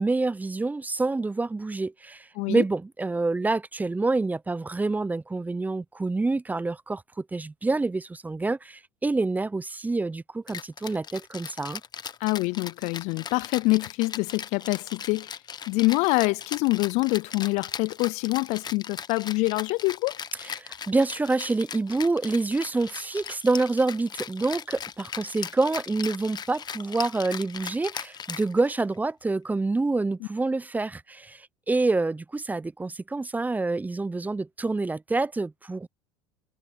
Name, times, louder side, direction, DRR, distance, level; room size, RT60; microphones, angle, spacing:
voice 1, 0.0-11.8 20.6-35.9, right 3 dB, 10° right, 0.7 m, -27 dB
Rattle (instrument), 10.5-28.9, left 7 dB, 30° left, 1.3 m, -38 dB
voice 2, 12.2-15.3 15.7-20.2, left 24 dB, 55° left, 0.5 m, -25 dB
hypercardioid pair, 80°, 14 cm